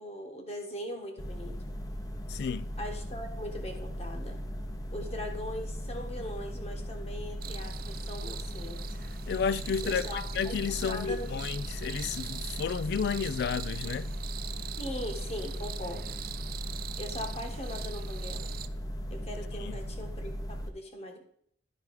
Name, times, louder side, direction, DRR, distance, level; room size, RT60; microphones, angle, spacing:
voice 1, 0.0-1.6 2.8-4.4 4.9-8.8 9.8-11.3 14.8-16.1 17.0-18.5 19.1-21.2, left 1 dB, 35° left, 1.4 m, -40 dB
sound 1, 1.2-20.7, equal, 20° left, 0.7 m, -38 dB
voice 2, 2.3-2.7 9.3-10.0 10.4-14.1 19.6-19.7, left 6 dB, 65° left, 0.3 m, -32 dB
sound 2, 7.4-18.7, right 12 dB, 55° right, 0.4 m, -43 dB
10.5 x 4.8 x 4.8 m
head